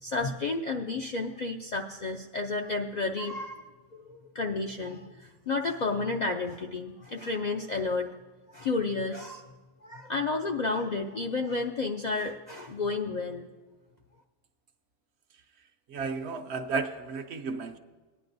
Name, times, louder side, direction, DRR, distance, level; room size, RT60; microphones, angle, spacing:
voice 1, 0.0-3.6 3.9-8.1 8.5-9.5 9.8-13.5, left 3 dB, 55° left, 3 dB, 0.5 m, -31 dB
voice 2, 15.9-17.8, right 4 dB, 65° right, 7 dB, 0.9 m, -33 dB
18.0 x 9.9 x 2.6 m, 1.3 s
omnidirectional pair, 1.3 m